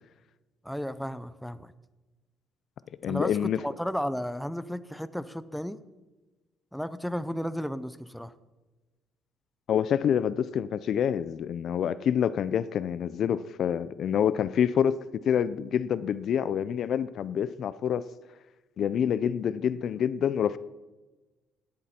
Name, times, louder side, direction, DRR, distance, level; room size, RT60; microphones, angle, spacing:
voice 1, 0.6-1.7 3.1-5.8 6.7-8.3, equal, ahead, 0.7 m, -33 dB
voice 2, 3.0-3.6 9.7-18.0 18.8-20.6, left 8 dB, 55° left, 0.5 m, -27 dB
18.0 x 12.0 x 4.4 m
cardioid pair, 120°, 0 cm